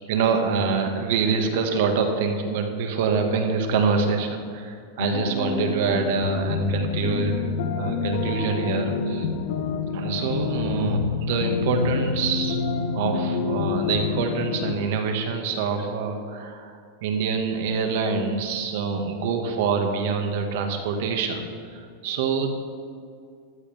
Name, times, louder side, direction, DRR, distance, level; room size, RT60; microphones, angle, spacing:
voice 1, 0.1-9.3 9.9-12.6 12.9-16.7 17.0-21.4 21.7-22.5, right 5 dB, 65° right, 4 dB, 1.9 m, -25 dB
sound 1, 5.0-14.7, left 5 dB, 70° left, 1.3 m, -27 dB
14.5 x 13.0 x 3.6 m, 2.3 s
supercardioid pair, 130°, 0 cm